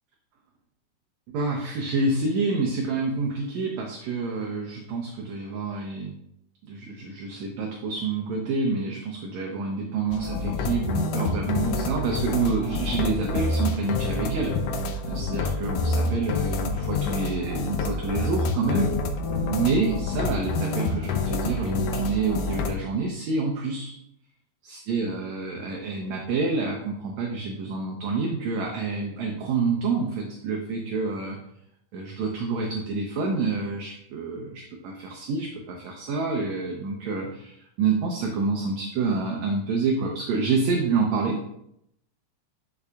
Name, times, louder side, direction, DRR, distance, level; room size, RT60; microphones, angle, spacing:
voice 1, 1.3-6.1 6.6-18.9 19.5-23.9 24.7-31.4 31.9-41.4, right 4 dB, 70° right, 1 dB, 1.9 m, -28 dB
sound 1, 10.1-22.7, left 3 dB, 90° left, 2.5 m, -27 dB
12.0 x 5.5 x 2.4 m, 0.76 s
omnidirectional pair, 3.8 m